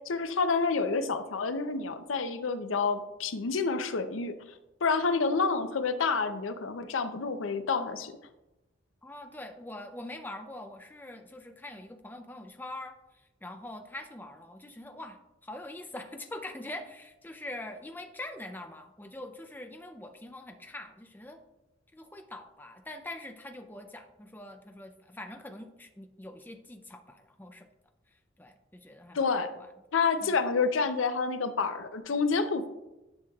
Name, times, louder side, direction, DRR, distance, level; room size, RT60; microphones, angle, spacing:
voice 1, 0.1-4.3 4.8-8.1 29.1-29.5 29.9-32.7, left 4 dB, 90° left, 9 dB, 0.6 m, -28 dB
voice 2, 9.0-21.4 21.9-27.7 28.4-29.3 29.6-29.7 30.2-30.4, left 1 dB, 10° left, 5 dB, 0.5 m, -44 dB
10.5 x 6.2 x 2.3 m, 0.98 s
head